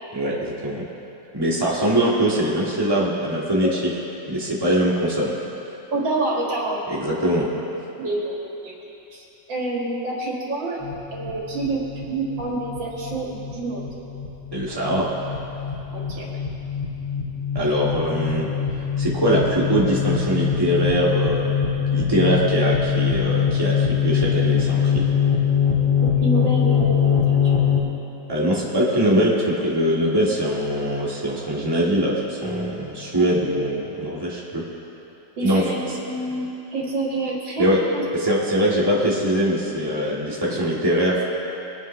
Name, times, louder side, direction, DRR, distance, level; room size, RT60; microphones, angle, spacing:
voice 1, 0.1-0.8 1.3-3.9 4.3-5.3 6.9-7.5 14.5-15.1 17.5-18.5 19.0-21.5 21.9-25.1 28.3-34.6 35.4-35.7 37.6-37.8 38.1-41.2, equal, 15° right, -5 dB, 1.9 m, -22 dB
voice 2, 5.9-6.8 8.0-8.7 9.1-10.8 11.1-13.9 15.9-16.4 17.6-17.7 26.0-27.6 33.1-33.2 35.4-37.7 37.9-38.3 40.5-40.6, right 2 dB, 90° right, -4 dB, 2.8 m, -28 dB
sound 1, 10.8-27.8, left 7 dB, 90° left, 3.4 m, -23 dB
23.0 x 9.0 x 3.3 m, 3.0 s
omnidirectional pair, 2.0 m